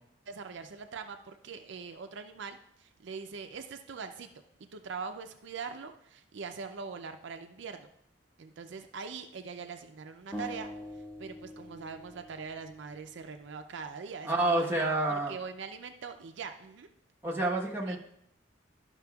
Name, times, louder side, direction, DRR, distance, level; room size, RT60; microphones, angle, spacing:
voice 1, 0.3-4.3 4.6-7.9 8.4-10.7 11.2-16.9 17.9-18.0, right 5 dB, 70° right, 6 dB, 0.5 m, -42 dB
sound 1, 10.3-13.5, left 1 dB, 10° left, 1.6 m, -44 dB
voice 2, 14.2-15.3 17.2-18.0, right 2 dB, 10° right, -3 dB, 1.1 m, -28 dB
12.0 x 5.8 x 2.3 m, 0.72 s
head